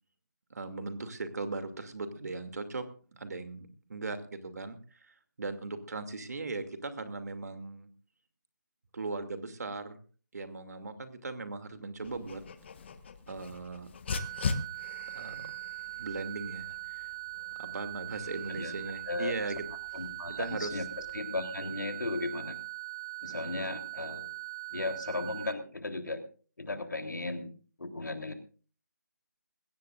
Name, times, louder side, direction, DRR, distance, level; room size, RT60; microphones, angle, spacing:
voice 1, 0.5-2.8 3.1-7.9 8.9-9.9 10.3-12.4 13.3-13.9 15.1-15.5 16.0-17.1 17.6-19.6 20.3-20.8, right 3 dB, 60° right, 8 dB, 2.5 m, -38 dB
Dog, 12.0-21.1, left 4 dB, 35° left, 1.3 m, -41 dB
sound 1, 14.1-25.5, right 22 dB, 20° right, 0.7 m, -41 dB
voice 2, 19.9-20.9 21.1-22.5 23.2-24.3 24.7-26.2 26.6-27.5 27.8-28.3, left 2 dB, 75° left, 6 dB, 3.3 m, -36 dB
21.5 x 17.0 x 2.5 m, 0.40 s
figure-of-eight pair, 155°, 10 cm